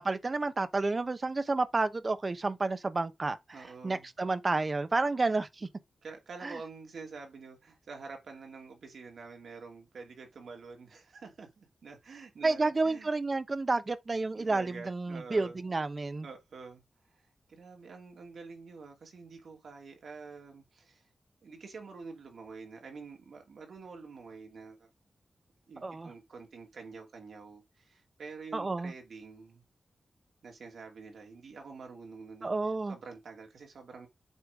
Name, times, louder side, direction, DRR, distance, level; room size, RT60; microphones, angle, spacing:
voice 1, 0.0-5.7 6.4-6.6 12.4-16.3 25.8-26.1 28.5-28.9 32.4-33.0, right 3 dB, 35° right, 0.9 m, -30 dB
voice 2, 3.5-4.1 6.0-13.1 14.4-15.6 16.2-16.8 17.5-21.0 21.4-24.9 25.7-29.6 30.4-32.5 32.9-34.1, right 4 dB, 80° right, 2.7 m, -47 dB
8.2 x 3.3 x 5.2 m
wide cardioid pair, 105°, 0 cm